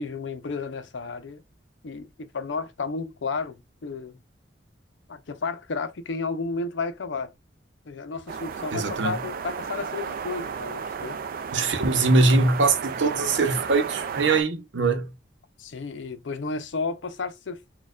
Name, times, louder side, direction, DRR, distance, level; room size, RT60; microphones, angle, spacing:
voice 1, 0.0-1.4 1.8-4.2 5.1-7.3 7.9-11.2 11.5-11.7 15.6-17.7, left 4 dB, 85° left, 0.6 m, -32 dB
sound 1, 8.3-14.4, right 6 dB, 50° right, 0.3 m, -33 dB
voice 2, 8.7-9.2 11.5-15.1, right 3 dB, 80° right, 0.7 m, -22 dB
4.2 x 2.3 x 2.3 m
head